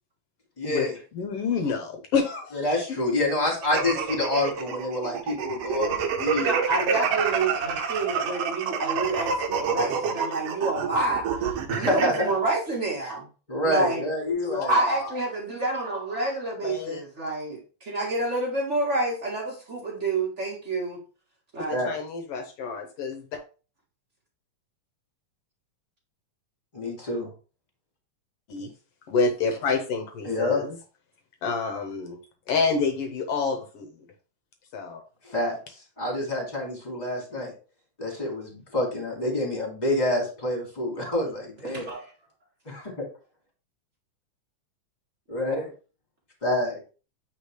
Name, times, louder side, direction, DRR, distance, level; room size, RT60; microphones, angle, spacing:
voice 1, 0.6-0.9 2.5-6.8 11.7-12.1 13.5-14.7 21.7-21.9 26.7-27.3 30.2-30.6 35.2-35.6 36.0-37.5 38.0-41.9 42.7-42.9 45.3-45.7 46.4-46.8, left 1 dB, 15° left, 0 dB, 2.0 m, -27 dB
voice 2, 1.1-2.6 14.3-15.1 16.6-17.0 21.6-23.4 28.5-28.7 29.1-30.8 31.4-32.2 32.5-33.9 34.7-35.0, left 4 dB, 70° left, 6 dB, 1.5 m, -28 dB
sound 1, 3.6-12.2, right 6 dB, 65° right, 1.6 m, -28 dB
voice 3, 6.4-13.3 13.6-14.1 14.7-21.0 21.5-21.9 41.6-42.1, right 2 dB, 45° right, -2 dB, 0.9 m, -28 dB
8.8 x 4.1 x 3.2 m, 0.35 s
omnidirectional pair, 3.5 m